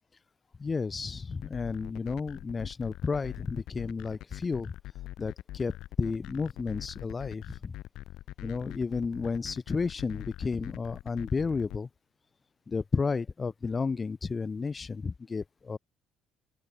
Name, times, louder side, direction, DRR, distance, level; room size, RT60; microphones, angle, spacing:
voice 1, 0.6-4.7 5.2-7.7 8.4-11.9 12.7-15.8, left 4 dB, 25° left, 6.4 m, -32 dB
sound 1, 1.3-11.8, left 15 dB, 70° left, 6.6 m, -43 dB
open air
cardioid pair, 135°, 0 cm